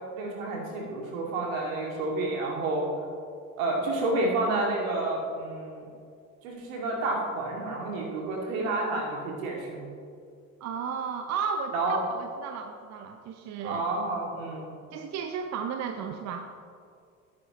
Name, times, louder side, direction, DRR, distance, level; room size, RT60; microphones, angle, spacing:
voice 1, 0.1-2.9 3.6-5.9 6.4-9.9 11.7-12.0 13.6-14.6, right 2 dB, 70° right, -1 dB, 2.4 m, -30 dB
voice 2, 10.6-13.8 14.9-16.5, right 6 dB, 40° right, 7 dB, 0.7 m, -34 dB
17.0 x 9.5 x 3.0 m, 2.3 s
figure-of-eight pair, 60°, 42 cm